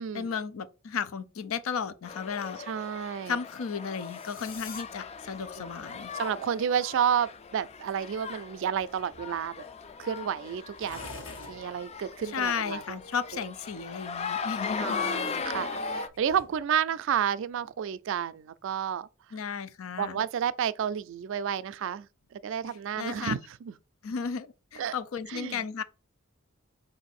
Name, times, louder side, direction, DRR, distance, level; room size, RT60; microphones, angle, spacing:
voice 1, 0.1-2.6 3.3-6.1 12.2-15.0 19.3-20.2 22.6-23.4 24.0-25.8, left 6 dB, 85° left, 0.5 m, -34 dB
sound 1, 2.1-16.1, left 5 dB, 30° left, 0.4 m, -38 dB
voice 2, 2.7-3.4 5.6-5.7 6.1-9.6 10.0-11.1 11.5-13.0 14.8-19.1 20.0-22.1 22.3-23.4 23.7-23.8 24.8-24.9 25.3-25.6, right 8 dB, 65° right, 0.3 m, -31 dB
sound 2, 3.7-4.8, left 5 dB, 50° left, 1.0 m, -46 dB
sound 3, 4.5-16.6, left 1 dB, 70° left, 1.4 m, -53 dB
4.6 x 2.6 x 4.1 m
head